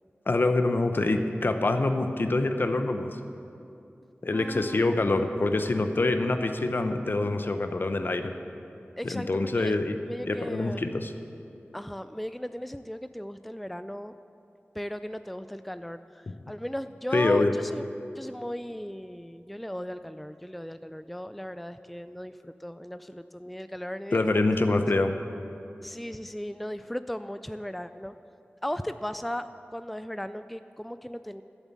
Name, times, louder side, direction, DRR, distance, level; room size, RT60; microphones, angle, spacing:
voice 1, 0.3-3.1 4.2-8.3 9.0-10.0 10.2-11.1 16.3-16.4 17.1-17.5 24.1-25.1, left 2 dB, 55° left, 7 dB, 0.8 m, -25 dB
voice 2, 4.3-4.8 9.0-9.8 10.1-10.8 11.7-14.1 14.8-17.8 18.2-24.4 24.7-24.8 25.8-28.1 28.6-29.5 29.7-31.4, equal, ahead, 11 dB, 0.3 m, -37 dB
11.5 x 8.1 x 7.4 m, 2.7 s
wide cardioid pair, 65°, 4 cm